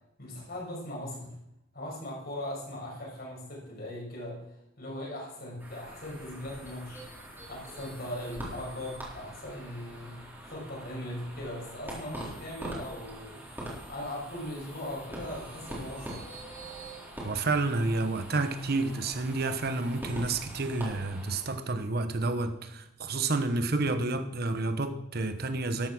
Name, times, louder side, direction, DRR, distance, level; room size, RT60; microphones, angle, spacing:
voice 1, 0.2-1.4 1.7-4.5 4.8-7.0 7.5-13.4 13.9-16.2, left 1 dB, 50° left, -2 dB, 6.3 m, -39 dB
sound 1, 5.6-21.6, right 1 dB, 10° right, 3.9 m, -43 dB
voice 2, 17.2-25.9, right 3 dB, 50° right, 9 dB, 1.1 m, -30 dB
13.0 x 11.0 x 6.1 m, 0.81 s
head